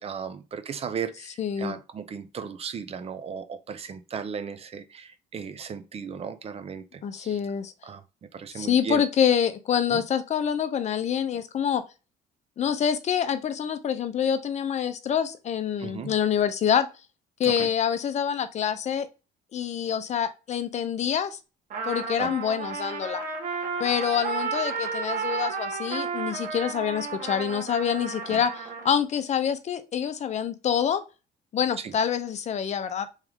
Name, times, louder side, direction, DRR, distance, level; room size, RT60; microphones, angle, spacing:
voice 1, 0.0-7.4 7.8-9.0 9.9-10.0 15.8-16.1 17.4-17.7 22.1-22.3 28.3-28.4 31.8-31.9, right 6 dB, 35° right, 0.6 m, -36 dB
voice 2, 1.4-1.8 7.0-7.7 8.5-11.8 12.6-16.9 17.4-19.1 19.5-21.4 21.8-23.2 23.8-31.0 31.5-33.1, left 8 dB, 40° left, 0.6 m, -26 dB
Trumpet, 21.7-28.9, right 5 dB, 50° right, 1.1 m, -32 dB
3.4 x 3.2 x 3.5 m
cardioid pair, 110°, 17 cm